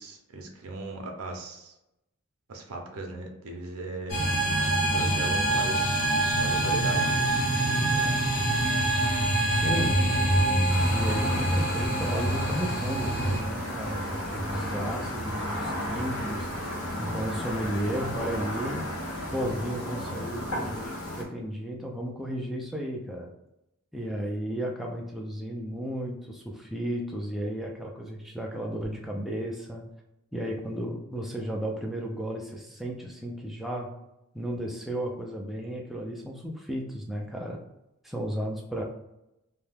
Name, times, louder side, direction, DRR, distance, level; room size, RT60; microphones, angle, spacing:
voice 1, 0.0-1.8 2.5-4.2 4.9-6.0 6.4-8.1, right 2 dB, 80° right, 2 dB, 0.6 m, -38 dB
sound 1, 4.1-13.4, right 1 dB, 40° left, 0.9 m, -25 dB
voice 2, 9.5-16.7 17.0-18.8 19.3-23.3 23.9-29.9 30.3-33.9 34.3-37.6 38.0-38.8, equal, ahead, -1 dB, 0.3 m, -34 dB
sound 2, 10.7-21.2, equal, 80° left, 0.9 m, -34 dB
2.7 x 2.2 x 3.3 m, 0.88 s
head